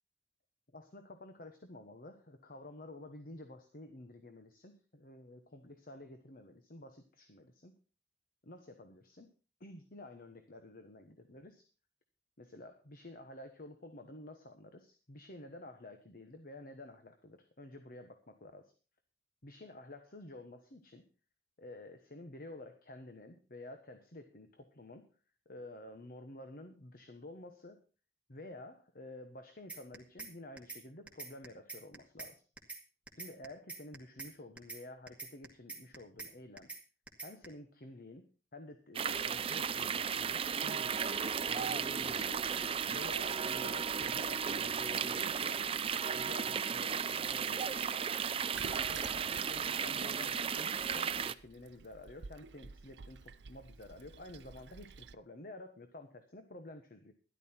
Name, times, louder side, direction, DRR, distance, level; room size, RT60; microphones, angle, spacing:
voice 1, 0.7-7.7 8.4-9.3 9.6-11.7 12.4-18.7 19.4-21.0 21.6-25.1 25.4-27.8 28.3-32.4 33.2-36.7 37.2-38.2 38.5-41.2 41.5-42.5 42.9-45.6 45.9-47.8 48.7-57.1, left 1 dB, 55° left, 7 dB, 1.2 m, -51 dB
sound 1, 29.7-30.3 30.6-30.8 31.1-32.3 32.6-32.8 33.1-34.3 34.6-34.8 35.1-36.3 36.6-36.8 37.1-37.5, right 3 dB, 10° right, 2.3 m, -45 dB
sound 2, 39.0-51.3, right 7 dB, 30° right, 0.5 m, -35 dB
Toilet flush, 48.5-55.1, right 5 dB, 80° right, 0.6 m, -51 dB
12.5 x 11.5 x 4.4 m, 0.35 s
head